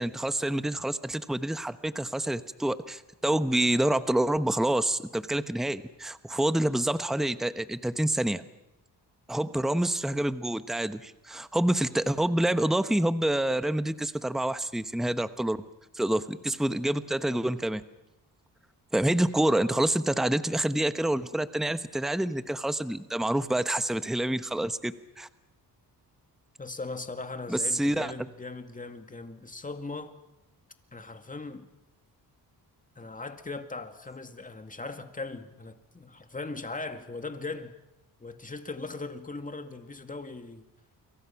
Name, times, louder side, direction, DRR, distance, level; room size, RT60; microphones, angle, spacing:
voice 1, 0.0-8.4 9.3-15.6 15.9-17.8 18.9-25.3 27.5-28.1, right 1 dB, ahead, 1.0 m, -27 dB
voice 2, 26.6-30.1 30.9-31.7 33.0-37.8 38.2-40.6, left 3 dB, 20° left, 2.2 m, -39 dB
29.5 x 23.5 x 5.9 m
cardioid pair, 90°, 41 cm